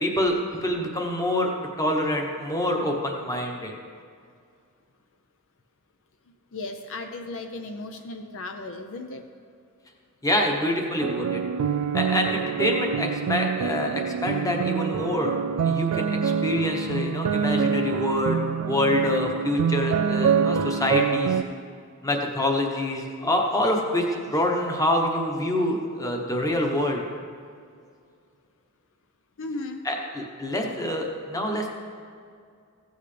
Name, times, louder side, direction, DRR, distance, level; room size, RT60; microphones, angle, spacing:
voice 1, 0.0-1.5 1.8-3.7 10.2-11.4 11.9-15.3 15.6-18.4 18.6-21.4 22.0-27.0 29.8-31.7, left 1 dB, 15° left, 1 dB, 1.0 m, -26 dB
voice 2, 6.5-9.2 29.4-29.9, left 2 dB, 60° left, 6 dB, 0.6 m, -35 dB
sound 1, 11.0-21.4, right 6 dB, 75° right, 0.3 m, -26 dB
15.5 x 8.0 x 3.3 m, 2.2 s
head